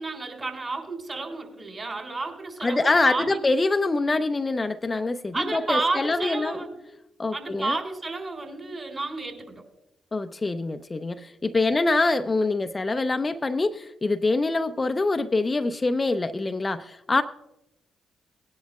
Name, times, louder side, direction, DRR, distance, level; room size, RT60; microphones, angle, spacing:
voice 1, 0.0-3.4 5.3-6.7 7.3-9.6, right 3 dB, 40° right, 3.6 m, -31 dB
voice 2, 2.6-6.6 7.2-7.8 10.1-17.2, left 3 dB, 30° left, 0.6 m, -25 dB
19.0 x 10.5 x 2.4 m
hypercardioid pair, 40°, 0 cm